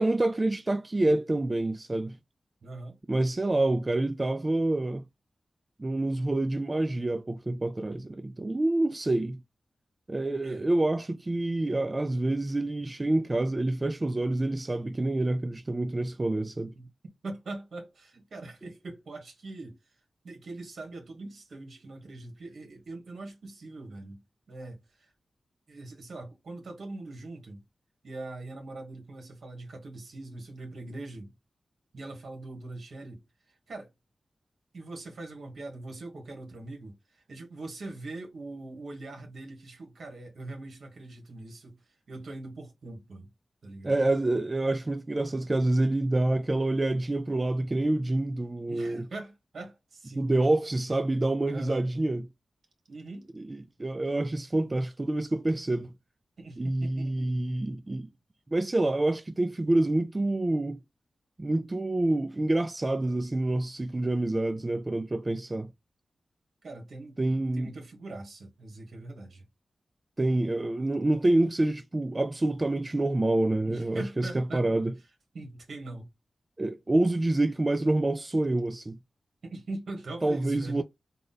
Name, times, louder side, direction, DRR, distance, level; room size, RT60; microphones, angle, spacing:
voice 1, 0.0-2.2 3.1-5.0 5.8-9.4 10.1-16.7 43.8-49.1 50.2-52.3 53.4-55.9 56.6-58.1 58.5-60.8 61.4-65.7 67.2-67.7 70.2-74.9 76.6-79.0 80.2-80.8, right 2 dB, 30° right, 0.3 m, -27 dB
voice 2, 2.6-3.0 10.4-10.7 16.7-16.9 17.2-19.8 20.2-24.2 24.5-25.1 25.7-27.6 28.0-31.3 31.9-33.2 33.7-33.9 34.7-41.8 42.1-43.3 43.6-43.9 48.7-50.3 51.5-51.8 52.9-53.3 56.4-57.5 66.6-69.4 73.6-74.8 75.3-76.1 79.4-80.8, right 2 dB, 80° right, 1.5 m, -42 dB
3.7 x 2.1 x 3.8 m
cardioid pair, 60°, 0 cm